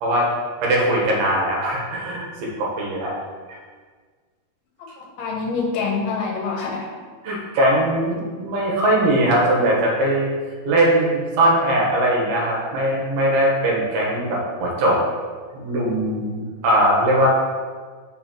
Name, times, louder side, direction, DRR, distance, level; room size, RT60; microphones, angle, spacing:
voice 1, 0.6-3.1 7.2-10.3 10.7-15.0 15.5-17.3, right 1 dB, 75° right, -3 dB, 2.8 m, -20 dB
voice 2, 4.8-6.9, left 4 dB, 75° left, 0 dB, 2.4 m, -26 dB
6.7 x 5.9 x 2.9 m, 1.5 s
omnidirectional pair, 4.6 m